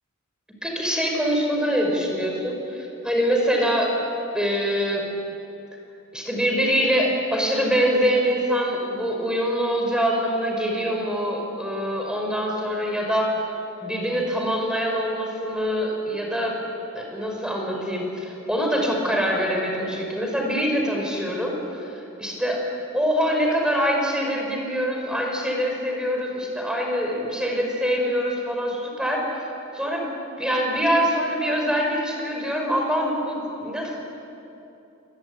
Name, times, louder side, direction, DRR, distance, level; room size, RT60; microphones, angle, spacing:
voice 1, 0.6-4.0 4.3-5.0 6.1-13.4 13.8-16.6 16.9-22.6 22.9-29.5 29.7-30.1 30.4-34.0, equal, 5° right, 1 dB, 5.5 m, -24 dB
27.0 x 21.5 x 9.8 m, 2.8 s
head